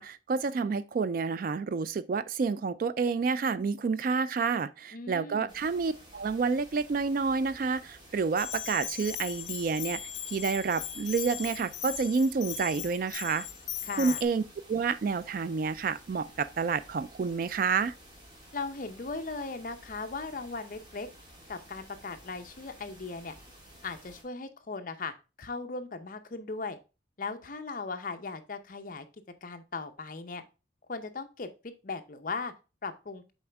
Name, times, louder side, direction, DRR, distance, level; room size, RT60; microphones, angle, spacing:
voice 1, 0.0-10.0 10.3-13.5 14.0-14.4 14.7-17.9, right 5 dB, 45° right, 0.3 m, -29 dB
voice 2, 4.9-5.5 13.8-14.2 18.5-21.1 21.5-23.4 23.8-25.1 25.4-26.8 27.2-29.1 29.4-30.4 30.9-32.5 32.8-33.2, left 4 dB, 45° left, 0.7 m, -38 dB
sound 1, 5.5-24.2, equal, 25° right, 1.6 m, -53 dB
Bell, 8.4-14.2, left 11 dB, 65° left, 1.1 m, -38 dB
7.0 x 4.3 x 3.3 m
head